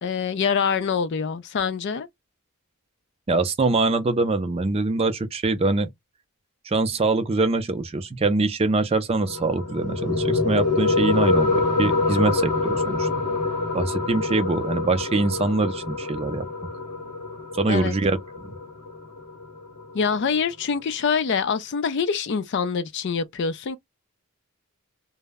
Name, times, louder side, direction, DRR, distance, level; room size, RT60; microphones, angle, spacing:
voice 1, 0.0-2.1 17.7-17.9 19.9-23.8, left 6 dB, 55° left, 0.4 m, -25 dB
voice 2, 3.3-5.9 6.7-13.1 13.7-16.5 17.6-18.5, right 3 dB, 25° right, 0.4 m, -23 dB
sound 1, 9.3-20.3, left 3 dB, 85° left, 0.8 m, -26 dB
2.1 x 2.0 x 3.3 m
head